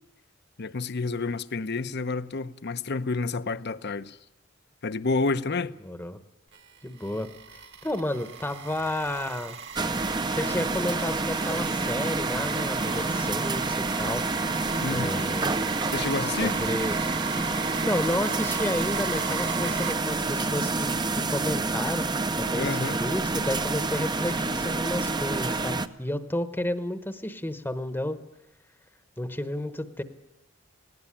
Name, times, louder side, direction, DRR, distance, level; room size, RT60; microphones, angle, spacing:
voice 1, 0.6-4.2 4.8-5.7 14.8-15.2 15.9-16.6 22.6-23.0, left 3 dB, 60° left, 0.8 m, -29 dB
voice 2, 5.8-6.2 6.8-9.6 10.3-14.3 14.9-15.6 16.3-17.0 17.8-20.9 21.1-28.2 29.2-30.0, left 1 dB, 10° left, 1.0 m, -31 dB
sound 1, 6.5-19.9, right 6 dB, 60° right, 2.0 m, -37 dB
sound 2, 9.7-25.9, right 3 dB, 20° right, 0.7 m, -28 dB
19.0 x 17.5 x 9.9 m
head